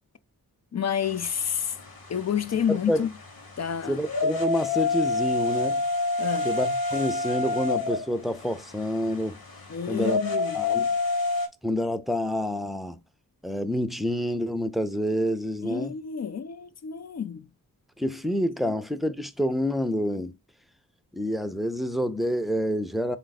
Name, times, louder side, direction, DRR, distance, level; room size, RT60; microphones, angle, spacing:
voice 1, 0.7-1.8 2.1-3.1 3.6-4.0 6.2-6.5 9.7-10.7 15.6-17.5, left 8 dB, 45° left, 0.5 m, -29 dB
sound 1, 1.0-11.5, left 3 dB, 70° left, 1.2 m, -29 dB
voice 2, 2.7-3.0 3.9-5.8 6.4-9.4 9.9-10.2 10.5-10.9 11.6-13.0 13.4-15.9 18.0-20.3 21.1-23.2, equal, ahead, 0.5 m, -28 dB
4.2 x 2.6 x 4.0 m
cardioid pair, 50°, 37 cm